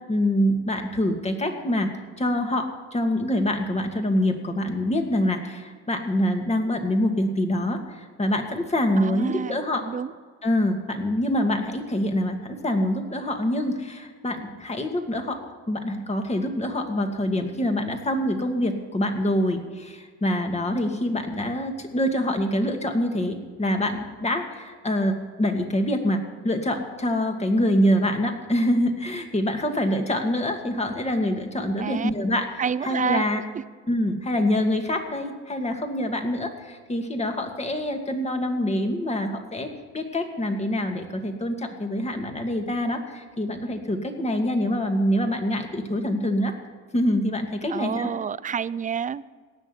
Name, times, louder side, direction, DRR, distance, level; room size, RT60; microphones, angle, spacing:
voice 1, 0.1-1.9 2.2-9.8 10.4-15.4 15.7-32.5 32.8-33.4 33.9-46.5 46.9-48.1, left 1 dB, 20° left, 4 dB, 2.4 m, -25 dB
voice 2, 9.0-10.1 31.8-32.1 32.6-33.2 47.7-49.3, right 7 dB, 25° right, 18 dB, 0.5 m, -28 dB
17.5 x 6.6 x 9.8 m, 1.5 s
supercardioid pair, 85°, 32 cm